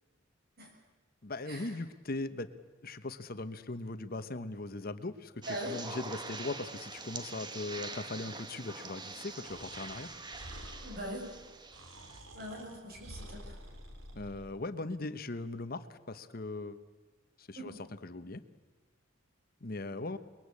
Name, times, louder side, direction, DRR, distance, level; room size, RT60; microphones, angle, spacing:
voice 1, 1.2-2.5 2.8-5.3 5.7-10.1 14.1-16.8 17.4-17.7 18.0-18.4 19.6-20.2, left 2 dB, 50° left, 11 dB, 1.1 m, -39 dB
sound 1, 5.4-12.2, right 3 dB, 20° right, 1.3 m, -45 dB
voice 2, 5.5-5.8 10.7-11.3 12.3-13.6 17.6-17.7, equal, 50° right, 2 dB, 7.9 m, -41 dB
Breathing, 9.4-14.5, right 1 dB, 85° right, 4.0 m, -49 dB
29.0 x 21.5 x 8.5 m, 1.3 s
head